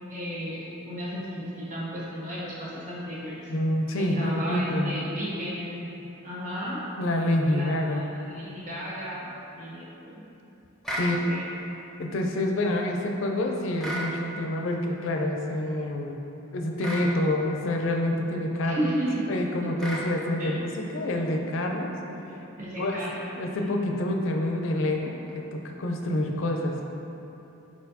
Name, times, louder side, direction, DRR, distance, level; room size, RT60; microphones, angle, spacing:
voice 1, 0.1-3.4 4.1-5.9 6.2-6.8 7.4-8.0 8.2-9.3 9.6-10.2 11.0-11.5 18.6-19.1 20.4-20.6 22.0-23.2, equal, 40° right, -7 dB, 1.0 m, -34 dB
voice 2, 3.5-4.9 7.0-8.0 11.0-11.3 12.0-16.2 16.5-19.0 19.3-21.9 22.8-23.0 23.3-26.8, left 1 dB, 65° left, 2 dB, 0.4 m, -27 dB
sound 1, 10.8-11.1 13.8-14.1 16.8-17.1 19.8-20.1, right 1 dB, ahead, 0.5 m, -32 dB
4.6 x 4.2 x 2.7 m, 3.0 s
head